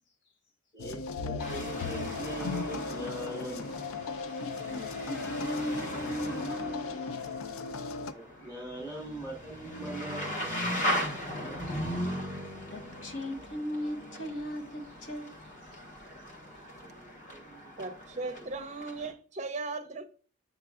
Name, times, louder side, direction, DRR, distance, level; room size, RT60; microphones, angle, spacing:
voice 1, 0.7-3.7 8.1-10.3 11.4-11.6 16.8-17.7 18.4-18.5, right 1 dB, 20° left, 1.4 m, -41 dB
sound 1, 0.8-8.1, left 4 dB, 90° left, 0.4 m, -37 dB
sound 2, 1.4-19.1, equal, 40° left, 1.1 m, -38 dB
voice 2, 4.4-7.0 12.7-15.4, equal, 65° left, 0.9 m, -37 dB
voice 3, 17.8-20.2, right 3 dB, 35° right, 0.5 m, -37 dB
8.0 x 5.8 x 2.4 m
head